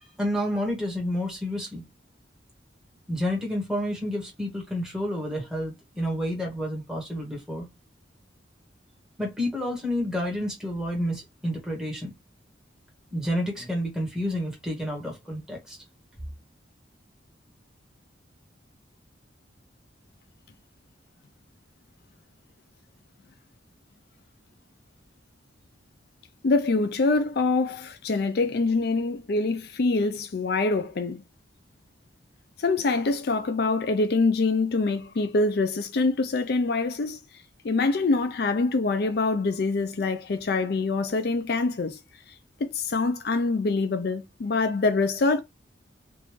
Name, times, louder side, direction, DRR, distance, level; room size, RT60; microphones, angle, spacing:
voice 1, 0.0-1.8 3.1-7.6 9.2-12.1 13.1-15.8, equal, 5° right, 1.4 m, -29 dB
voice 2, 26.4-31.2 32.6-37.2 37.6-42.0 42.6-45.4, left 3 dB, 55° left, 0.4 m, -25 dB
3.4 x 2.5 x 3.1 m
head